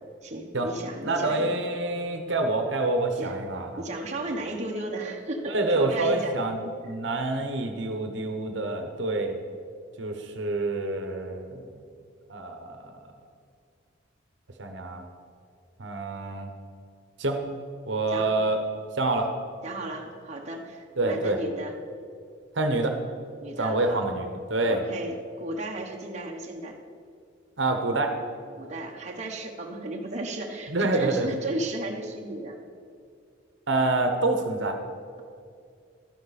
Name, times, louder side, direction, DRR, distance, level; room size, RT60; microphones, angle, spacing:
voice 1, 0.2-1.6 3.2-3.4 3.8-6.4 18.1-18.4 19.6-21.8 23.4-24.1 24.7-26.8 28.5-32.6, right 1 dB, 35° right, 0 dB, 1.1 m, -34 dB
voice 2, 1.0-3.7 5.5-9.4 10.0-11.8 12.3-13.1 14.6-15.0 15.8-16.5 17.2-17.4 17.9-18.6 19.0-19.3 21.0-21.4 22.5-22.9 23.6-24.8 27.6-28.1 30.7-31.3 33.7-34.8, right 2 dB, 65° right, 5 dB, 1.1 m, -27 dB
12.5 x 10.5 x 4.2 m, 2.3 s
head